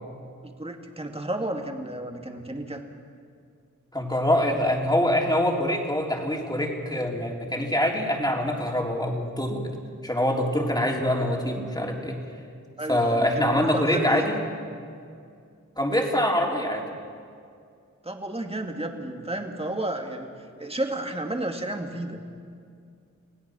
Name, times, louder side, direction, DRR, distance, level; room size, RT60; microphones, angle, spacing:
voice 1, 0.4-2.9 12.8-14.3 18.0-22.2, right 1 dB, 20° right, 3 dB, 2.2 m, -32 dB
voice 2, 3.9-9.6 10.0-12.2 12.9-14.4 15.8-16.9, left 1 dB, 15° left, 0 dB, 3.6 m, -24 dB
27.5 x 17.0 x 6.2 m, 2.3 s
wide cardioid pair, 60°, 31 cm